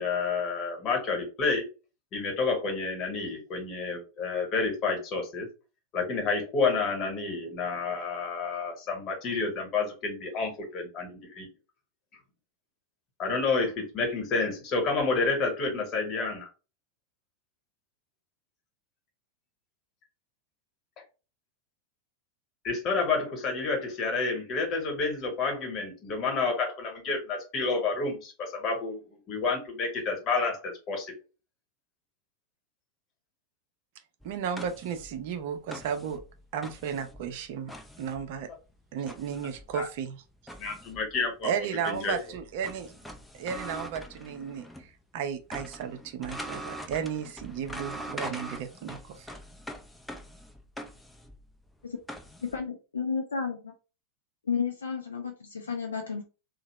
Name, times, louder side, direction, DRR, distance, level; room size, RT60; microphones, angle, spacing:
voice 1, 0.0-1.6 2.1-5.5 5.9-11.5 13.2-16.5 22.6-31.1 39.7-39.9 40.6-41.5 41.8-42.1, left 4 dB, 30° left, 1.1 m, -29 dB
sound 1, 34.2-44.9 45.2-52.6, equal, 5° left, 0.4 m, -43 dB
voice 2, 34.2-36.2 36.5-37.7 38.0-38.5 38.9-40.2 41.4-42.9 43.3-49.3, right 7 dB, 50° right, 0.5 m, -34 dB
voice 3, 52.4-53.7 54.5-56.2, left 6 dB, 70° left, 0.4 m, -32 dB
2.7 x 2.0 x 3.0 m
figure-of-eight pair, 90°, 0 cm